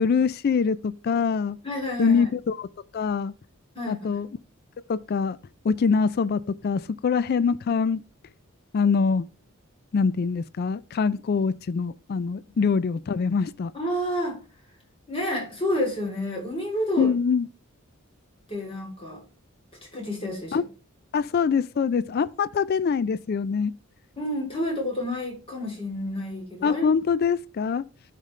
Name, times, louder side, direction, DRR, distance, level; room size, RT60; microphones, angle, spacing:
voice 1, 0.0-1.6 2.0-2.7 2.9-3.3 3.9-4.3 4.9-5.4 5.6-8.0 8.7-9.2 9.9-13.7 17.0-17.5 20.5-20.6 21.1-23.7 26.6-27.8, left 5 dB, 45° left, 0.3 m, -24 dB
voice 2, 1.6-2.3 3.7-4.2 13.7-14.4 15.1-17.1 18.5-19.2 19.9-20.6 24.2-26.9, left 1 dB, 25° left, 3.1 m, -29 dB
13.0 x 5.1 x 3.2 m
head